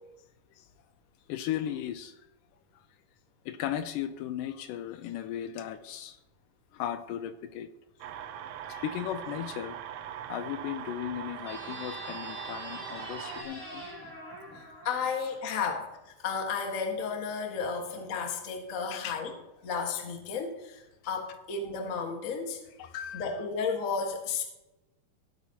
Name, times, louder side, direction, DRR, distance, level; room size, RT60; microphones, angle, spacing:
voice 1, 1.3-2.2 3.5-6.2 6.7-7.7 8.8-9.8 10.3-13.8 19.0-19.2 22.8-23.5, left 10 dB, 80° left, 10 dB, 2.1 m, -36 dB
sound 1, 8.0-13.4, right 10 dB, 90° right, 1.5 m, -41 dB
sound 2, 11.4-15.8, equal, 10° left, 2.1 m, -44 dB
voice 2, 14.8-15.8 16.2-19.3 19.6-22.6 23.1-24.4, left 5 dB, 40° left, 2 dB, 1.1 m, -33 dB
16.5 x 8.2 x 2.9 m, 0.97 s
omnidirectional pair, 4.0 m